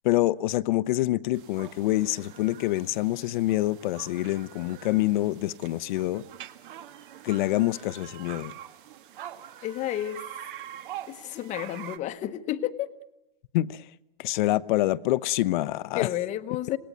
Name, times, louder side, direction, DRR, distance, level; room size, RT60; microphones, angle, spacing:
voice 1, 0.0-6.2 7.2-8.5 13.5-13.8 14.2-16.1, left 16 dB, 55° left, 0.9 m, -26 dB
sound 1, 1.3-12.0, right 11 dB, 60° right, 1.8 m, -44 dB
voice 2, 9.6-10.3 11.1-12.9 15.9-16.8, left 12 dB, 25° left, 1.0 m, -31 dB
27.5 x 19.0 x 9.3 m
supercardioid pair, 150°, 29 cm